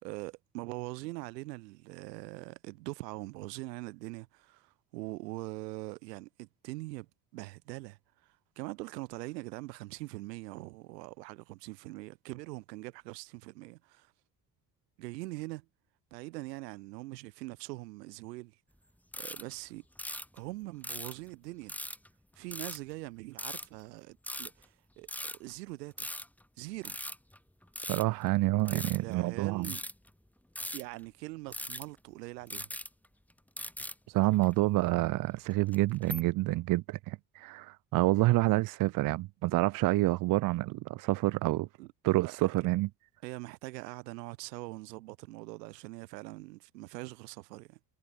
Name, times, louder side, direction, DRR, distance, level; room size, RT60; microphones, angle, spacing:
voice 1, 0.0-7.1 7.3-14.1 15.0-15.7 16.1-18.5 19.2-19.8 20.3-21.7 22.4-26.1 26.6-27.0 28.7-29.8 30.7-32.7 41.8-42.5 43.2-47.8, right 21 dB, 80° right, 2.4 m, -43 dB
sound 1, 19.1-19.5 20.0-20.4 20.8-21.3 21.7-22.1 22.5-22.8 23.4-23.7 24.2-24.6 25.1-25.5 25.9-26.4 26.8-28.3 28.6-29.0 29.6-30.1 30.5-31.0 31.5-32.0 32.5-33.3 33.6-33.9 34.3-34.5 35.5-36.2, left 1 dB, 5° left, 1.5 m, -40 dB
voice 2, 27.9-29.7 34.1-41.7 42.0-42.9, right 19 dB, 45° right, 0.4 m, -28 dB
hypercardioid pair, 55°, 48 cm